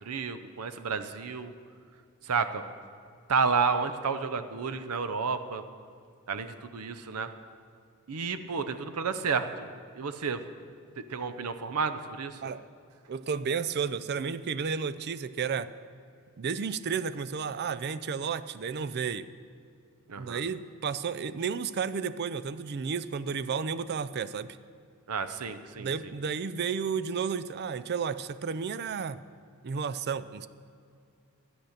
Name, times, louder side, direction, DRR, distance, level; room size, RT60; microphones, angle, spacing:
voice 1, 0.0-1.5 2.2-2.6 3.3-5.6 6.3-7.3 8.1-9.7 9.9-10.4 11.0-12.4 20.1-20.4 25.1-25.9, right 5 dB, 85° right, 11 dB, 0.6 m, -31 dB
voice 2, 13.1-15.7 16.4-19.3 20.2-24.6 25.8-29.2 29.6-30.5, right 6 dB, 50° right, 15 dB, 0.4 m, -32 dB
13.0 x 8.9 x 6.5 m, 2.4 s
head